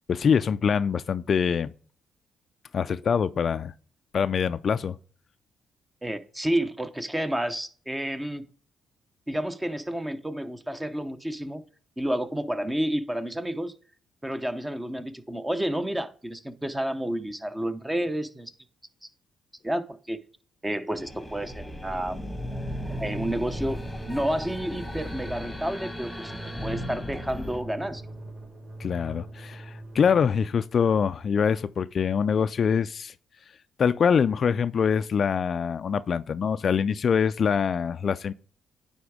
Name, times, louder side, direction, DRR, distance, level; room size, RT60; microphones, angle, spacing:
voice 1, 0.1-1.7 2.7-3.7 4.1-5.0 28.8-33.1 33.8-38.3, left 6 dB, 50° left, 0.3 m, -24 dB
voice 2, 6.0-8.5 9.3-11.6 12.0-13.7 14.2-18.5 19.6-20.2 20.6-22.2 23.0-23.8 24.1-26.3 26.6-28.0, right 1 dB, 10° right, 0.7 m, -30 dB
sound 1, 21.0-27.6, equal, 5° left, 1.3 m, -36 dB
sound 2, 23.5-30.3, right 1 dB, 30° right, 3.5 m, -42 dB
9.5 x 3.5 x 4.8 m
cardioid pair, 90°, 0 cm